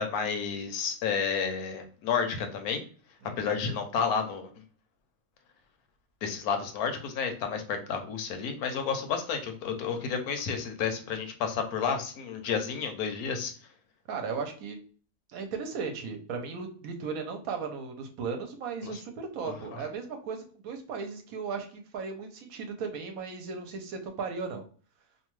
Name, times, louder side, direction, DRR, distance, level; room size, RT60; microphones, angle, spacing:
voice 1, 0.0-2.8 3.4-4.5 6.2-13.5 18.8-19.0 19.4-19.8, left 6 dB, 75° left, 6 dB, 1.1 m, -31 dB
voice 2, 14.1-14.8 15.3-24.6, right 5 dB, 75° right, 5 dB, 1.0 m, -36 dB
2.8 x 2.2 x 3.0 m, 0.42 s
omnidirectional pair, 1.6 m